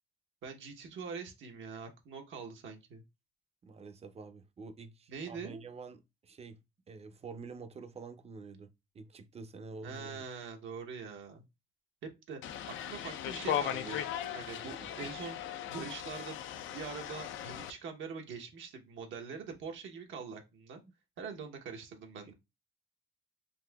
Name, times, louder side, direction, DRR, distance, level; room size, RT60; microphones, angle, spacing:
voice 1, 0.4-3.0 5.1-5.6 9.8-11.4 12.3-12.4 12.7-15.4 15.7-20.8 21.2-22.3, right 5 dB, 75° right, 0.8 m, -44 dB
voice 2, 3.6-6.6 6.9-8.7 8.9-10.3 14.6-15.1, right 4 dB, 30° right, 0.5 m, -48 dB
sound 1, 12.4-17.7, left 10 dB, 80° left, 0.4 m, -38 dB
4.0 x 2.6 x 2.2 m
cardioid pair, 90°, 20 cm